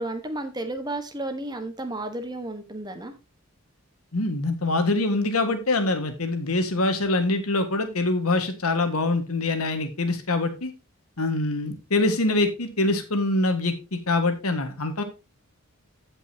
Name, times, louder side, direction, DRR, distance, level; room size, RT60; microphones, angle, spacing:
voice 1, 0.0-3.1, right 2 dB, 20° right, 7 dB, 1.3 m, -32 dB
voice 2, 4.1-10.7 11.2-15.0, left 2 dB, 85° left, 7 dB, 1.7 m, -24 dB
15.5 x 5.4 x 2.8 m, 0.28 s
head